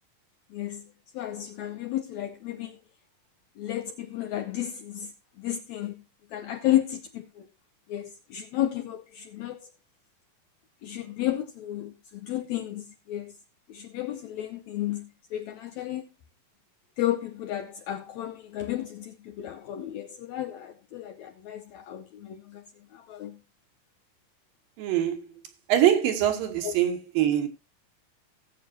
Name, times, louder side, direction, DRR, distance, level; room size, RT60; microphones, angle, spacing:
voice 1, 0.5-0.9 1.1-2.8 3.6-6.0 6.3-7.5 7.9-9.7 10.8-13.4 13.7-16.1 17.0-22.6 22.9-23.4 26.6-26.7, left 13 dB, 85° left, 1.6 m, -32 dB
voice 2, 24.8-25.3 25.7-27.5, right 11 dB, 85° right, 3.1 m, -23 dB
17.5 x 7.9 x 2.7 m
omnidirectional pair, 4.0 m